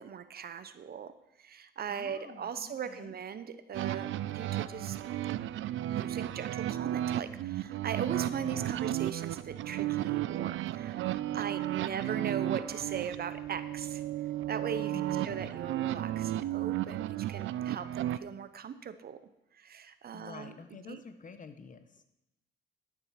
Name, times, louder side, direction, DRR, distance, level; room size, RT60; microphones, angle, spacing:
voice 1, 0.0-5.0 5.9-14.0 14.5-19.2 19.5-20.6 20.9-21.0, right 7 dB, 50° right, 12 dB, 0.9 m, -39 dB
voice 2, 1.9-3.1 8.4-8.9 11.3-11.6 14.9-15.5 20.1-22.0, left 5 dB, 40° left, 9 dB, 1.1 m, -49 dB
sound 1, 3.7-18.2, right 13 dB, 75° right, 0.5 m, -34 dB
12.5 x 7.3 x 5.9 m, 0.90 s
cardioid pair, 90°, 20 cm